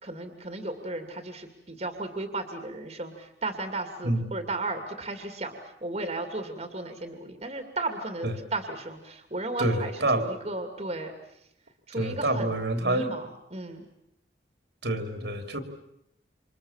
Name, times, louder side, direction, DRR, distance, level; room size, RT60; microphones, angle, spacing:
voice 1, 0.0-11.1 11.9-12.5 12.8-13.8, right 2 dB, 35° right, 6 dB, 2.7 m, -35 dB
voice 2, 9.6-10.2 11.9-13.1 14.8-15.6, right 1 dB, 65° right, 6 dB, 3.4 m, -27 dB
28.5 x 27.0 x 7.4 m, 0.81 s
head